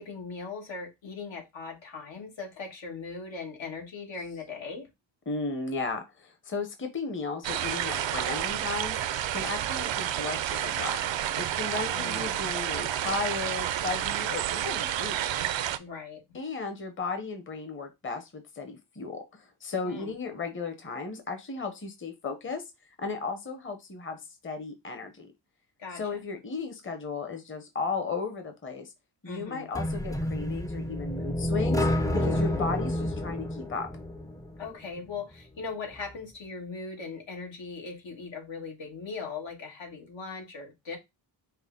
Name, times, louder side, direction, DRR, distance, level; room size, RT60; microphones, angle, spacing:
voice 1, 0.0-4.9 11.9-12.4 15.8-16.2 19.8-20.1 25.8-26.2 29.2-29.7 32.4-32.7 34.6-41.0, left 4 dB, 80° left, 1.6 m, -39 dB
voice 2, 5.3-11.0 11.4-15.2 16.3-22.6 23.0-25.3 25.9-28.9 29.2-31.9 32.1-33.9, left 4 dB, 25° left, 0.8 m, -35 dB
sound 1, 7.4-15.8, right 11 dB, 75° right, 0.5 m, -30 dB
sound 2, 29.8-34.7, left 1 dB, 10° left, 0.4 m, -29 dB
5.4 x 2.1 x 3.7 m
wide cardioid pair, 95°, 45 cm